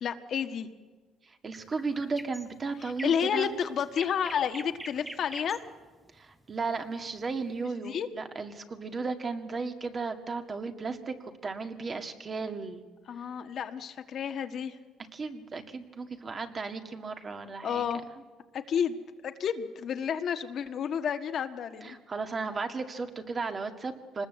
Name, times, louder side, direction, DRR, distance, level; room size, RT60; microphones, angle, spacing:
voice 1, 0.0-0.7 2.8-5.6 7.8-8.1 13.1-14.7 17.6-18.0 18.5-19.0 19.2-21.9, left 8 dB, 55° left, 7 dB, 1.5 m, -31 dB
voice 2, 1.4-3.5 6.2-12.8 15.1-17.8 21.8-24.3, right 4 dB, 35° right, 6 dB, 2.1 m, -35 dB
sound 1, 1.5-7.6, right 1 dB, 10° right, 1.0 m, -46 dB
24.5 x 20.0 x 8.1 m, 1.4 s
cardioid pair, 100°, 0 cm